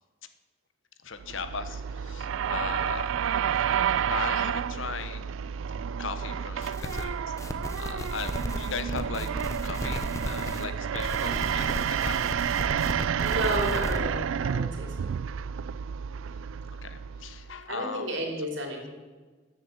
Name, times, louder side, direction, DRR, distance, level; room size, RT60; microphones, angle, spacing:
voice 1, 1.0-3.1 3.6-3.7 4.1-5.4 6.0-7.2 7.8-9.3 9.6-12.5 16.8-18.1, left 5 dB, 80° left, 10 dB, 1.1 m, -37 dB
sound 1, 1.2-17.5, right 8 dB, 80° right, 0.3 m, -30 dB
sound 2, 6.6-7.0 7.4-10.6 10.9-14.0, left 1 dB, 15° left, 0.9 m, -35 dB
voice 2, 13.2-15.1 17.7-18.9, right 1 dB, 65° right, 2 dB, 3.2 m, -32 dB
13.5 x 8.0 x 7.2 m, 1.3 s
head